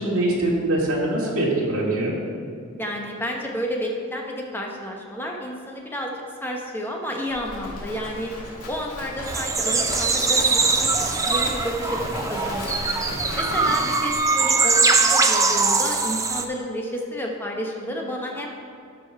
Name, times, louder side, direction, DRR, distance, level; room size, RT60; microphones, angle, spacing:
voice 1, 0.0-2.1, right 1 dB, 65° right, -5 dB, 2.4 m, -23 dB
voice 2, 2.8-6.1 6.4-8.3 8.7-12.0 12.3-12.9 13.4-18.5, equal, 10° left, 0 dB, 1.0 m, -31 dB
Livestock farm animals working animals, 7.3-13.7, left 1 dB, 85° left, 2.2 m, -34 dB
sound 1, 9.3-16.4, right 4 dB, 15° right, 0.4 m, -22 dB
12.5 x 5.4 x 4.7 m, 2.3 s
head